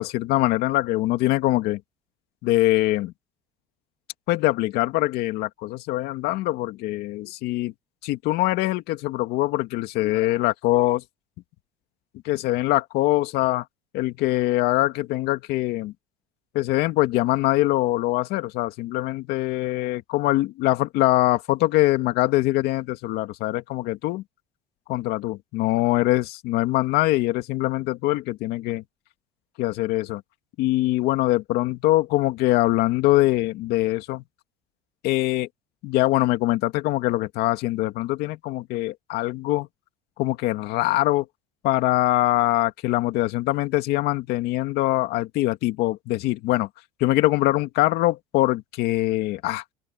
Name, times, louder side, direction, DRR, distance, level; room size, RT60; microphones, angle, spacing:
voice 1, 0.0-1.8 2.4-3.1 4.3-7.7 8.0-11.0 12.2-13.6 13.9-15.9 16.5-24.2 24.9-28.8 29.6-30.2 30.6-34.2 35.0-35.5 35.8-39.7 40.2-41.3 41.6-46.7 47.0-49.6, left 17 dB, 70° left, 2.4 m, -23 dB
open air
cardioid pair, 120°, 17 cm